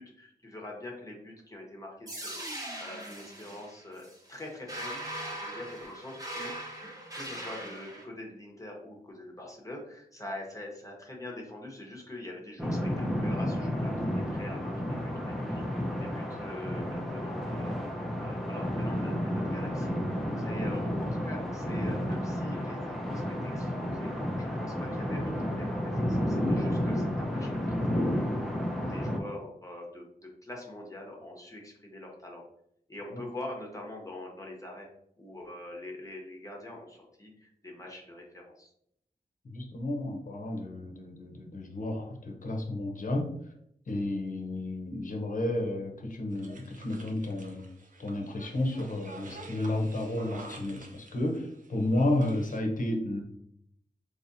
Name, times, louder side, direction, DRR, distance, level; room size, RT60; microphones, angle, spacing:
voice 1, 0.0-2.4 2.8-20.0 20.4-32.4 32.9-34.9 35.2-38.7, left 1 dB, 20° left, -1 dB, 1.0 m, -44 dB
sound 1, 2.1-8.0, right 1 dB, 20° right, 1.1 m, -40 dB
sound 2, 12.6-29.2, equal, ahead, 0.6 m, -31 dB
voice 2, 39.4-43.3 43.9-47.6 48.0-53.2, left 1 dB, 55° left, 2 dB, 0.8 m, -32 dB
sound 3, 46.3-52.6, right 2 dB, 55° right, 0.7 m, -49 dB
4.2 x 3.0 x 2.7 m, 0.72 s
wide cardioid pair, 80°, 16 cm